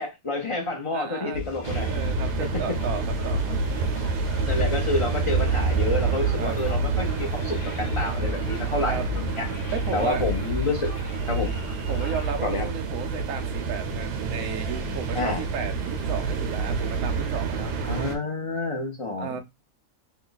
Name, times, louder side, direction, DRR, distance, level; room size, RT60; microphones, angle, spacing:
voice 1, 0.0-1.9 4.5-9.5 9.9-10.9 11.3-11.5 12.4-12.6 15.1-15.4 17.8-19.4, left 2 dB, 40° left, 0.4 m, -29 dB
voice 2, 0.9-1.4 1.8-3.5 6.4-6.6 8.8-9.0 9.7-10.2 11.9-17.9 19.2-19.4, right 6 dB, 65° right, 0.9 m, -34 dB
sound 1, 1.3-12.3, left 5 dB, 70° left, 1.2 m, -35 dB
sound 2, 1.6-18.2, right 4 dB, 90° right, 1.3 m, -28 dB
3.1 x 2.3 x 3.9 m
omnidirectional pair, 1.7 m